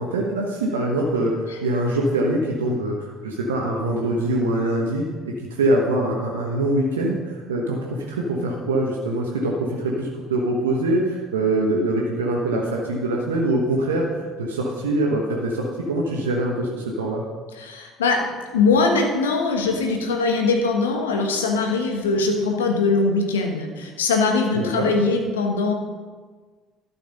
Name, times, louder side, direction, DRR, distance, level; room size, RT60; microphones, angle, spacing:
voice 1, 0.0-17.2 24.5-24.9, right 1 dB, 80° right, -1 dB, 1.1 m, -24 dB
voice 2, 17.5-25.7, left 3 dB, 80° left, 3 dB, 1.3 m, -21 dB
12.0 x 7.1 x 5.4 m, 1.4 s
figure-of-eight pair, 60°, 0 cm